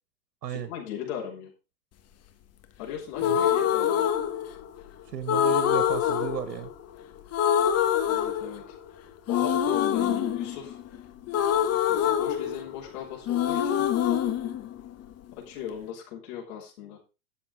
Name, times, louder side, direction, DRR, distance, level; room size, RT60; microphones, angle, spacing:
voice 1, 0.5-1.5 2.8-4.1 8.1-8.8 9.3-10.8 11.9-13.9 15.3-17.0, left 9 dB, 65° left, -2 dB, 5.8 m, -38 dB
sound 1, 3.2-4.8 5.3-7.0 7.3-8.9 9.3-13.0 13.3-15.3, left 9 dB, 30° left, 1.6 m, -25 dB
voice 2, 5.0-6.7, right 9 dB, 85° right, 12 dB, 1.7 m, -34 dB
13.0 x 7.8 x 5.0 m, 0.31 s
hypercardioid pair, 115°, 48 cm